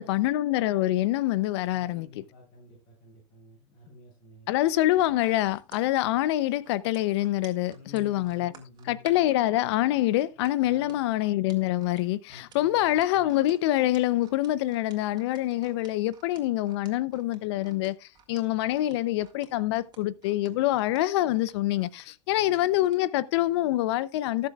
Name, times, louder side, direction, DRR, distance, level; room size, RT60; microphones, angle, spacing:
voice 1, 0.0-2.1 4.5-8.5 8.9-18.0 18.3-24.5, left 15 dB, 65° left, 0.7 m, -25 dB
voice 2, 1.7-4.5 7.7-9.4 10.6-11.1 12.3-13.3 22.3-22.8, left 2 dB, 35° left, 8.0 m, -51 dB
sound 1, 4.6-9.4 10.2-23.0 23.4-23.6, right 7 dB, 30° right, 3.2 m, -54 dB
19.5 x 7.5 x 2.4 m
hypercardioid pair, 100°, 15 cm